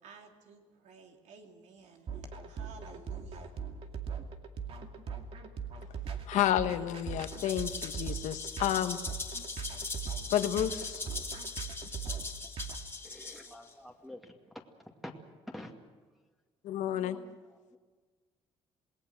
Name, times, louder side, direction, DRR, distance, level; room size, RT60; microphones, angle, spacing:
voice 1, 0.0-3.7, right 5 dB, 75° right, 3 dB, 3.1 m, -54 dB
sound 1, 2.1-12.8, right 6 dB, 50° right, 2.4 m, -40 dB
voice 2, 6.3-9.0 10.3-11.0 16.6-17.2, left 11 dB, 80° left, 9 dB, 1.4 m, -30 dB
Rattle (instrument), 7.2-13.7, left 4 dB, 20° left, 2.2 m, -41 dB
voice 3, 13.0-14.2 15.0-15.1 15.5-15.7 16.9-17.3 17.7-17.8, left 1 dB, ahead, 0 dB, 2.3 m, -47 dB
27.5 x 19.0 x 6.5 m, 1.4 s
cardioid pair, 125°, 12 cm